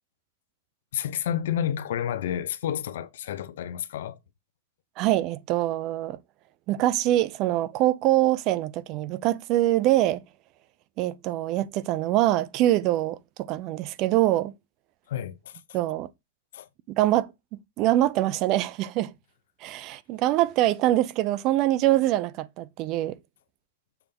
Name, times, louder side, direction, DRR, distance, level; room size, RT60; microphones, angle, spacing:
voice 1, 0.9-4.2 15.1-15.5 16.5-16.7, left 10 dB, 70° left, 0.8 m, -30 dB
voice 2, 5.0-6.2 6.7-10.2 11.0-14.5 15.7-16.1 16.9-17.3 17.8-19.1 19.6-23.2, right 14 dB, 35° right, 0.5 m, -24 dB
7.1 x 3.5 x 5.3 m
supercardioid pair, 150°, 0 cm